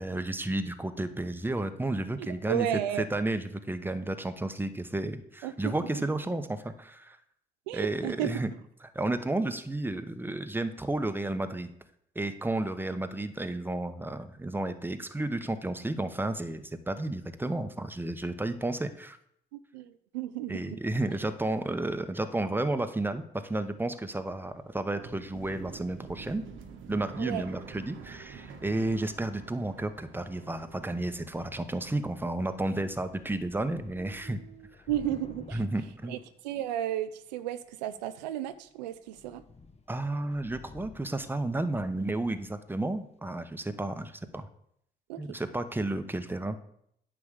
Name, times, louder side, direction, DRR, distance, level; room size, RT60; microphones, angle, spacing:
voice 1, 0.0-2.7 3.1-7.2 7.7-8.5 8.9-11.7 12.1-19.2 20.5-26.4 26.9-34.4 35.5-36.2 39.9-44.5 45.2-46.6, right 2 dB, 10° right, 9 dB, 0.9 m, -32 dB
voice 2, 2.2-3.0 5.4-6.0 7.7-8.4 19.5-20.8 27.2-27.5 28.9-29.0 34.9-35.6 36.1-39.4 45.1-45.2, right 11 dB, 85° right, 13 dB, 0.4 m, -33 dB
sound 1, 23.7-33.6 33.9-34.7, right 5 dB, 65° right, 1.2 m, -49 dB
Thunder / Rain, 32.4-32.6 32.8-36.9 37.7-38.1 38.5-38.7 38.9-42.7, left 3 dB, 30° left, 1.0 m, -52 dB
9.5 x 3.5 x 6.6 m, 0.69 s
hypercardioid pair, 45°, 21 cm